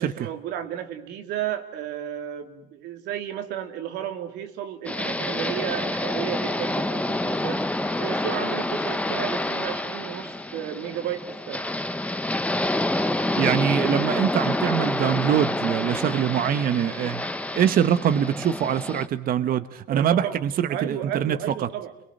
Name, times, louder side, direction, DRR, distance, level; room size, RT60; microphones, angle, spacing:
voice 1, 0.0-7.6 8.0-11.7 19.9-20.4 20.7-21.9, right 10 dB, 85° right, 6 dB, 3.1 m, -33 dB
sound 1, 4.9-19.1, left 1 dB, 10° left, 1.2 m, -28 dB
voice 2, 13.4-17.2 17.5-21.7, right 9 dB, 60° right, 11 dB, 1.2 m, -23 dB
30.0 x 23.0 x 7.7 m, 0.77 s
cardioid pair, 110°, 17 cm